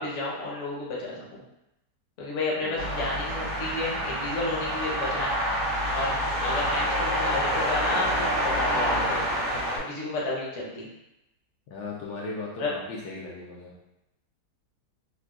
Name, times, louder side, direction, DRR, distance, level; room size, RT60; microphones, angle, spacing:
voice 1, 0.0-1.4 2.2-5.3 5.9-6.1 6.4-9.2 9.8-10.9 12.6-12.7, left 2 dB, 55° left, -4 dB, 1.0 m, -31 dB
sound 1, 2.8-9.8, equal, 45° right, 0.7 m, -27 dB
voice 2, 11.7-13.7, left 3 dB, 75° left, -4 dB, 1.1 m, -37 dB
3.6 x 2.3 x 2.3 m, 0.90 s
omnidirectional pair, 1.8 m